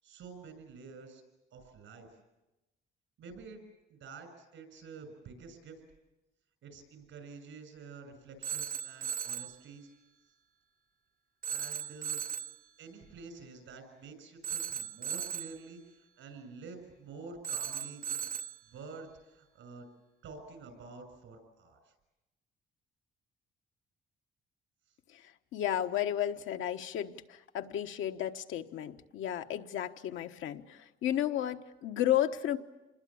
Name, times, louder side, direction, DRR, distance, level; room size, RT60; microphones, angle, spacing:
voice 1, 0.0-1.2 1.5-2.1 3.2-3.6 3.9-5.8 6.6-9.9 11.5-12.3 12.8-18.3 18.7-19.9 20.2-21.8, right 4 dB, 80° right, 9 dB, 6.9 m, -49 dB
Telephone, 8.4-9.6 11.4-12.6 14.4-15.6 17.4-18.6, right 7 dB, 45° right, 0.9 m, -37 dB
voice 2, 25.5-32.6, left 11 dB, 85° left, 6 dB, 1.2 m, -33 dB
27.0 x 21.0 x 8.7 m, 1.0 s
cardioid pair, 90°, 20 cm